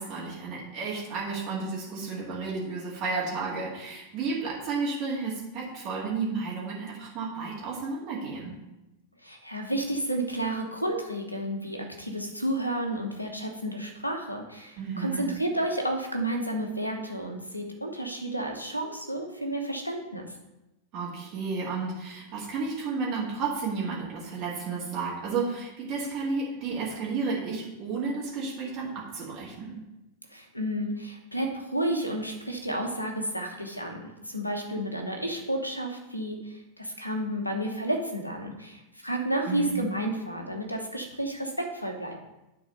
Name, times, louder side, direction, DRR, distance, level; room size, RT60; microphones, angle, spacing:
voice 1, 0.0-8.5 14.8-15.3 20.9-29.8 39.5-39.8, right 4 dB, 40° right, -5 dB, 1.9 m, -32 dB
voice 2, 9.2-20.2 30.3-36.4 36.8-42.2, right 1 dB, 85° left, 3 dB, 1.1 m, -31 dB
9.4 x 3.9 x 5.4 m, 0.96 s
figure-of-eight pair, 90°, 0 cm